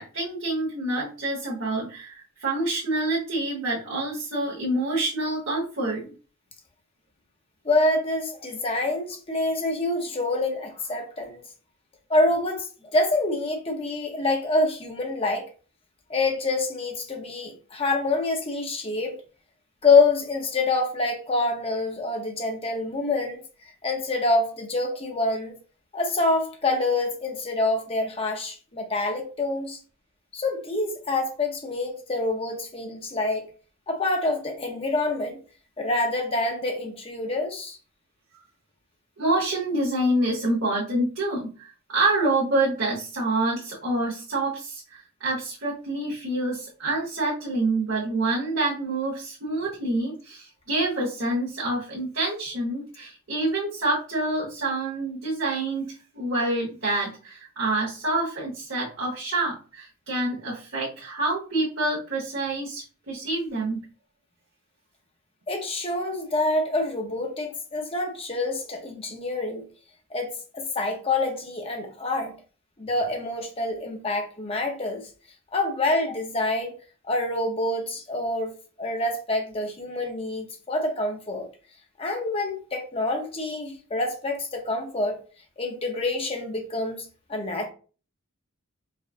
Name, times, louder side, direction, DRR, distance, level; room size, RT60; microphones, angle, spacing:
voice 1, 0.0-6.1 39.2-63.8, right 2 dB, 65° right, 1.2 m, -27 dB
voice 2, 7.6-11.4 12.1-15.5 16.1-19.1 19.8-23.4 23.8-25.5 25.9-29.8 30.3-33.5 33.9-35.4 35.8-37.8 65.5-69.6 70.1-72.3 72.8-75.0 75.5-76.7 77.1-78.5 78.8-81.5 82.0-85.2 85.6-87.7, left 2 dB, 25° left, 0.7 m, -26 dB
4.8 x 2.4 x 2.4 m
head